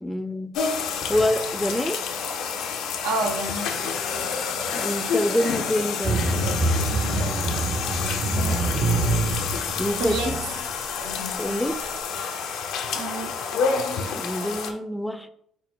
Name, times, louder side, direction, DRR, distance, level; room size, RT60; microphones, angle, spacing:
voice 1, 0.0-0.6 1.1-2.0 4.7-6.3 9.8-10.4 11.4-11.8 14.2-15.3, left 1 dB, 5° left, 10 dB, 0.4 m, -26 dB
sound 1, 0.5-14.7, left 6 dB, 75° left, 0.5 m, -29 dB
voice 2, 3.0-3.9 8.3-8.7 10.0-10.3 12.9-13.3, right 3 dB, 90° right, 3 dB, 0.7 m, -29 dB
sound 2, 6.0-10.6, right 2 dB, 55° right, 0.9 m, -25 dB
4.6 x 2.1 x 4.2 m, 0.68 s
supercardioid pair, 60°, 0 cm